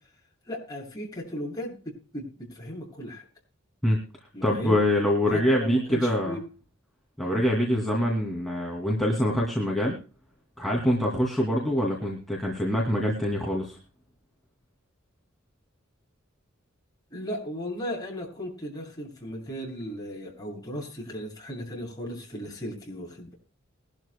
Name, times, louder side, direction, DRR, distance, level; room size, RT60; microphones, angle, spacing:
voice 1, 0.5-3.2 4.3-4.8 5.3-6.4 17.1-23.3, equal, 20° left, -2 dB, 6.9 m, -36 dB
voice 2, 4.4-6.4 7.2-10.0 10.6-13.8, left 1 dB, ahead, -3 dB, 2.4 m, -25 dB
21.5 x 12.5 x 2.2 m, 0.35 s
head